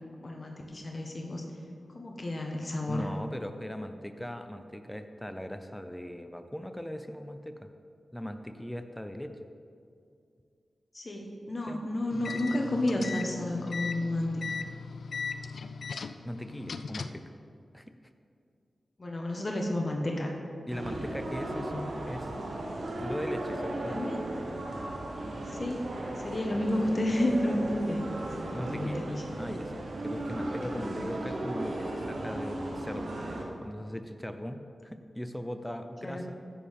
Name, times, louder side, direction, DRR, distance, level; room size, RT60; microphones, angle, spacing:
voice 1, 0.2-1.4 1.9-3.1 10.9-14.3 14.6-14.7 19.0-20.3 21.4-21.9 23.9-24.3 25.5-25.9 26.2-29.2 30.7-31.0 36.0-36.3, left 1 dB, 45° left, 1 dB, 1.3 m, -31 dB
voice 2, 2.9-7.7 8.1-9.4 11.7-11.8 16.2-17.2 17.7-17.8 20.7-22.3 23.0-24.0 28.5-29.1 29.3-33.2 33.6-36.4, equal, 5° left, 7 dB, 0.7 m, -39 dB
sound 1, 12.1-17.3, left 5 dB, 75° left, 0.4 m, -38 dB
sound 2, 20.7-33.5, right 1 dB, 80° right, 1.3 m, -36 dB
15.5 x 6.5 x 3.6 m, 2.4 s
cardioid pair, 45°, 0 cm